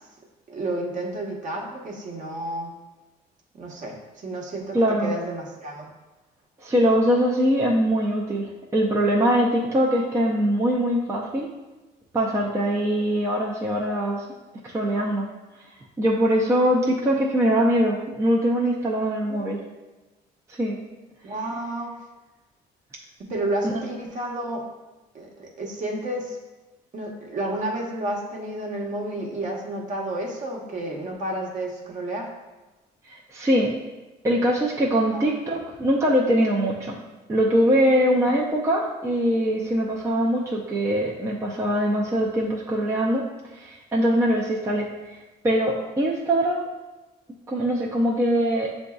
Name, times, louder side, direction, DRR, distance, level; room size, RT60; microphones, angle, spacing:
voice 1, 0.5-2.7 3.5-5.9 19.3-19.5 21.2-21.9 23.2-24.7 25.1-26.4 26.9-32.3 35.1-35.2, right 1 dB, 50° right, -1 dB, 1.0 m, -31 dB
voice 2, 4.7-5.2 6.6-11.5 12.1-14.3 14.6-15.3 16.0-19.6 20.5-20.8 33.1-33.8 34.2-37.0 37.3-43.3 43.5-46.7 47.5-48.8, equal, 15° right, -3 dB, 0.5 m, -22 dB
7.4 x 2.6 x 2.3 m, 1.1 s
cardioid pair, 110°, 17 cm